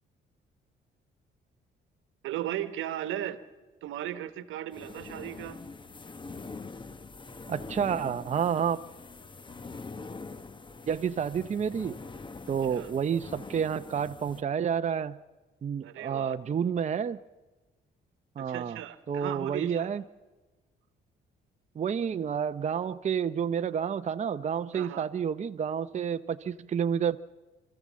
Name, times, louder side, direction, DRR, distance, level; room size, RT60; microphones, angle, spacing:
voice 1, 2.2-3.4 3.8-5.6 12.7-12.9 15.8-16.3 18.4-19.9 24.7-25.1, right 12 dB, 85° right, 11 dB, 1.2 m, -36 dB
sound 1, 4.7-14.4, left 4 dB, 25° left, 0.8 m, -44 dB
voice 2, 7.5-8.8 10.9-12.0 12.5-15.2 15.6-17.2 18.4-18.8 19.1-20.0 21.8-27.2, right 7 dB, 35° right, 9 dB, 0.6 m, -29 dB
26.5 x 14.0 x 7.4 m, 1.2 s
cardioid pair, 90°, 20 cm